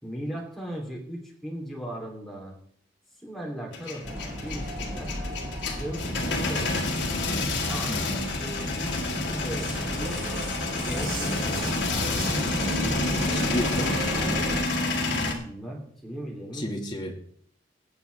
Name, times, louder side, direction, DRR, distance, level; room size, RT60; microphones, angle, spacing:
voice 1, 0.0-2.6 3.2-5.1 5.7-6.8 7.7-8.0 8.3-8.9 9.4-10.2 10.8-11.7 15.4-16.7, equal, ahead, -2 dB, 3.2 m, -37 dB
Male speech man speaking / Vehicle / Engine starting, 3.7-15.3, left 3 dB, 70° left, 2.2 m, -29 dB
Vehicle, 4.0-14.6, right 1 dB, 50° right, 3.5 m, -34 dB
voice 2, 12.9-14.0 16.5-17.1, left 1 dB, 25° left, 1 dB, 2.0 m, -32 dB
19.5 x 8.2 x 3.5 m, 0.65 s
head